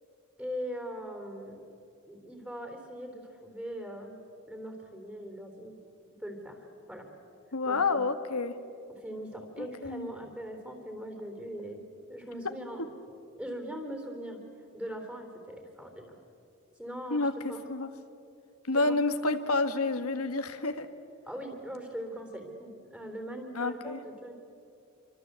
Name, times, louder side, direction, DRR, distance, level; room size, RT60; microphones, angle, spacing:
voice 1, 0.4-1.6 2.1-4.2 4.5-5.7 6.2-7.0 7.6-8.0 9.0-11.8 12.1-12.8 13.4-14.4 14.7-16.1 16.8-17.6 18.8-19.0 21.3-24.3, equal, 5° right, 3 dB, 3.6 m, -40 dB
voice 2, 7.5-8.5 9.6-10.1 17.1-17.3 17.7-17.9 18.7-20.9 23.5-24.0, left 3 dB, 85° left, 8 dB, 1.6 m, -29 dB
27.5 x 24.5 x 8.2 m, 2.7 s
head